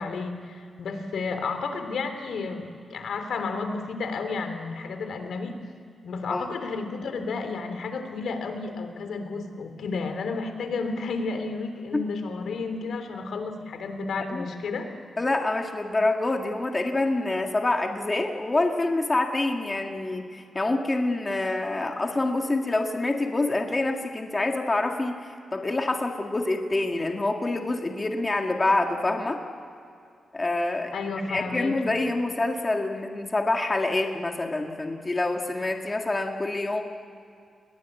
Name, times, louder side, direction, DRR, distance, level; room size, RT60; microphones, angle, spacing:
voice 1, 0.0-5.5 6.0-14.9 30.9-32.0, left 4 dB, 80° left, 7 dB, 3.4 m, -32 dB
voice 2, 15.2-29.4 30.3-30.9 31.3-36.8, left 2 dB, 20° left, 3 dB, 1.9 m, -26 dB
29.5 x 22.0 x 8.3 m, 2.4 s
wide cardioid pair, 160°, 0 cm